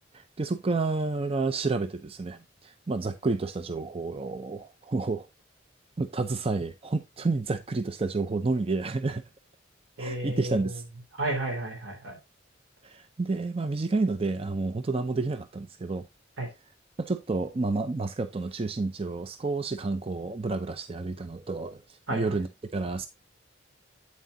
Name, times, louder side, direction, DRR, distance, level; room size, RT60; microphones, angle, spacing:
voice 1, 0.0-5.3 6.0-9.2 10.0-10.8 12.8-16.1 17.0-21.8 22.1-23.1, right 3 dB, 30° right, 0.5 m, -30 dB
voice 2, 10.0-10.8 11.2-12.2 16.4-16.5 22.1-22.4, right 2 dB, 85° right, 3.3 m, -32 dB
8.5 x 7.6 x 2.7 m
head